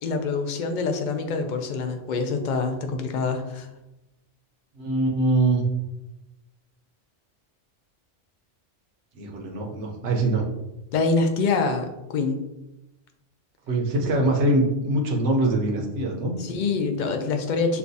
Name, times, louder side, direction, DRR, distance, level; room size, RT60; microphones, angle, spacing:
voice 1, 0.0-3.7 10.9-12.4 16.4-17.8, left 4 dB, 55° left, 5 dB, 0.6 m, -25 dB
voice 2, 4.8-5.6 9.2-10.4 13.7-16.3, right 2 dB, 75° right, 1 dB, 1.0 m, -23 dB
6.8 x 2.4 x 2.6 m, 0.95 s
omnidirectional pair, 1.2 m